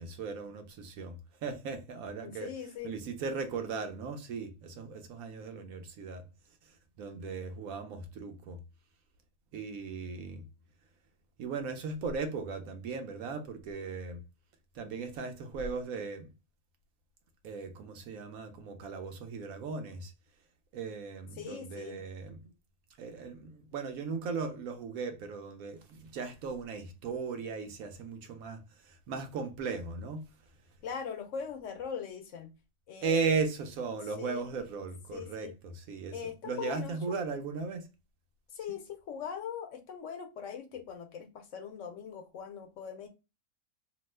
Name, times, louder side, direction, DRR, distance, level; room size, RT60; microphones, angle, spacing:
voice 1, 0.0-2.5 2.8-6.2 7.0-8.6 9.5-10.4 11.4-14.2 14.7-16.3 17.4-20.1 20.7-22.5 23.0-30.2 33.0-36.2 36.4-37.9 38.7-38.8, right 4 dB, 80° right, 1.1 m, -37 dB
voice 2, 2.2-2.9 21.4-22.0 30.8-32.5 32.9-33.3 34.2-34.5 35.1-35.5 36.1-37.2 38.5-43.1, left 7 dB, 65° left, 0.9 m, -41 dB
2.8 x 2.0 x 3.2 m
omnidirectional pair, 1.5 m